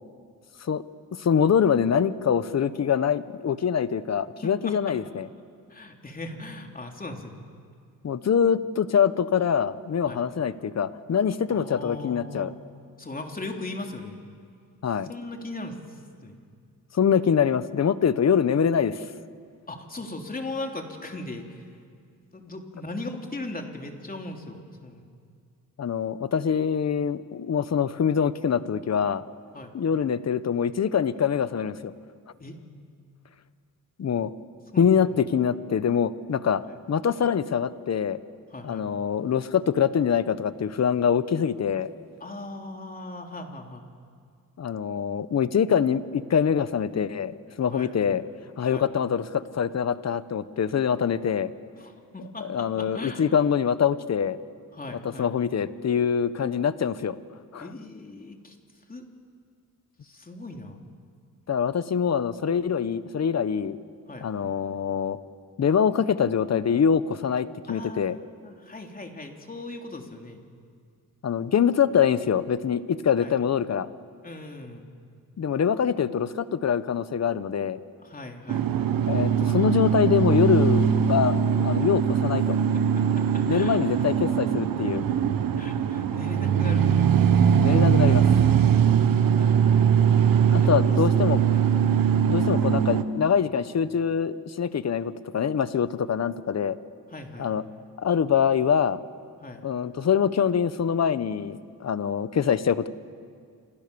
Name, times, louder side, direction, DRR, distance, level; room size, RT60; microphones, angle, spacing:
voice 1, 1.1-5.3 8.0-12.5 14.8-15.1 16.9-19.0 25.8-29.2 29.7-31.9 34.0-34.3 34.8-36.6 36.9-38.2 38.6-41.9 44.6-48.2 48.6-51.5 52.4-54.4 54.9-57.2 57.5-57.7 61.5-63.8 64.2-65.2 65.6-68.2 71.2-73.9 75.4-77.8 79.1-81.4 81.6-82.6 83.5-85.0 87.6-88.3 90.5-91.4 92.3-96.8 97.4-97.6 98.0-99.0 99.6-102.9, left 7 dB, 50° left, 14 dB, 1.1 m, -24 dB
voice 2, 4.4-4.7 5.7-7.4 10.0-10.2 11.5-12.5 13.0-14.2 15.1-16.3 19.7-21.7 22.3-25.0 29.5-29.7 32.4-32.6 34.7-35.1 36.6-36.7 38.5-38.9 42.2-43.8 47.7-47.9 48.7-49.0 51.8-53.3 54.7-55.3 57.6-58.6 58.9-59.1 60.0-60.8 64.1-64.3 67.7-70.4 73.2-73.3 74.2-74.9 78.0-78.7 82.5-83.9 85.6-87.2 89.4-91.0 91.5-91.7 92.6-92.7 97.1-97.5 99.4-99.6, left 2 dB, 25° left, 3 dB, 3.3 m, -39 dB
sound 1, 78.5-93.0, right 8 dB, 75° right, 1.6 m, -21 dB
29.0 x 27.5 x 7.0 m, 2.2 s
cardioid pair, 100°, 34 cm